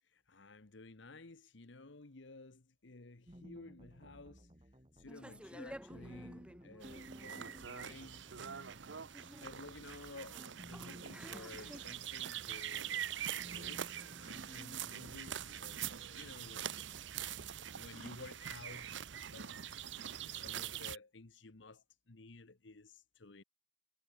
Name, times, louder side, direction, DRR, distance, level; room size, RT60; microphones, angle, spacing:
voice 1, 0.0-4.5 4.9-8.8 9.4-13.1 13.5-17.2 17.6-23.4, left 3 dB, 65° left, 1.2 m, -54 dB
sound 1, 3.3-17.7, equal, 25° right, 3.2 m, -57 dB
sound 2, 5.1-11.8, equal, 5° right, 1.9 m, -54 dB
sound 3, 6.8-21.0, right 10 dB, 65° right, 0.7 m, -44 dB
head